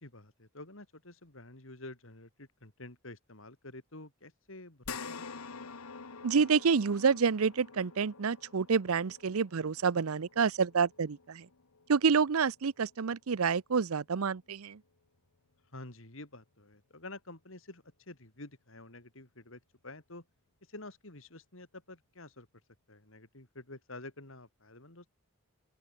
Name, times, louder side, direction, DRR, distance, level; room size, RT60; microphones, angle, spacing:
voice 1, 0.0-5.3 5.5-5.7 15.7-20.2 20.7-22.5 22.9-25.1, left 2 dB, 65° left, 3.5 m, -49 dB
sound 1, 4.8-13.5 13.9-14.0 15.5-15.6, left 5 dB, 90° left, 1.4 m, -48 dB
voice 2, 6.2-11.5 11.9-14.8, right 5 dB, 80° right, 0.6 m, -28 dB
open air
head